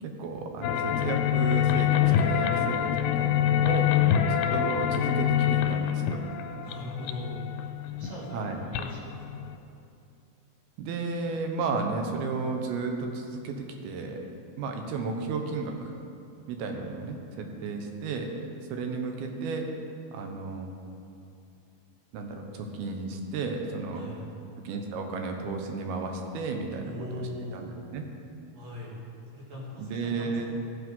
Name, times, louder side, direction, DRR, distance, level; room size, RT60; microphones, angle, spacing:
voice 1, 0.0-3.9 4.3-6.2 8.3-8.6 10.8-14.2 14.6-15.9 16.5-18.3 18.7-19.7 20.1-20.7 22.1-24.1 24.6-26.9 27.5-28.1 29.8-30.5, right 4 dB, 85° right, 3 dB, 3.0 m, -33 dB
sound 1, 0.6-9.6, left 9 dB, 90° left, 2.7 m, -26 dB
voice 2, 6.6-7.4 8.0-9.5 23.9-24.2 26.8-27.6 28.5-28.9 29.3-30.5, left 1 dB, 65° right, -5 dB, 4.1 m, -40 dB
16.5 x 6.4 x 5.5 m, 2.5 s
omnidirectional pair, 4.3 m